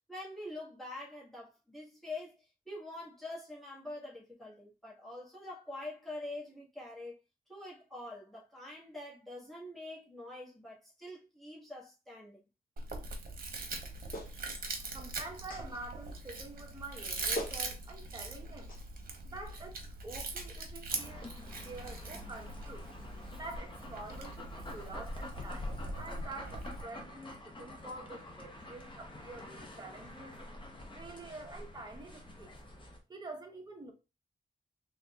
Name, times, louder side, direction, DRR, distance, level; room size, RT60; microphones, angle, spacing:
voice 1, 0.1-7.2 7.5-12.4, left 2 dB, ahead, 1.4 m, -45 dB
Chewing mastication, 12.8-26.8, right 3 dB, 65° right, 0.9 m, -42 dB
Clapping, 14.1-14.4 15.5-15.7 16.9-17.0 17.4-17.6 18.7-18.8, equal, 65° left, 1.4 m, -39 dB
voice 2, 14.9-18.7 19.2-21.3 21.6-22.9 23.3-30.4 30.9-32.5 33.1-33.9, right 2 dB, 25° right, 0.9 m, -47 dB
sound 1, 20.9-33.0, left 1 dB, 30° left, 0.8 m, -47 dB
4.0 x 3.3 x 2.3 m
wide cardioid pair, 150°, 16 cm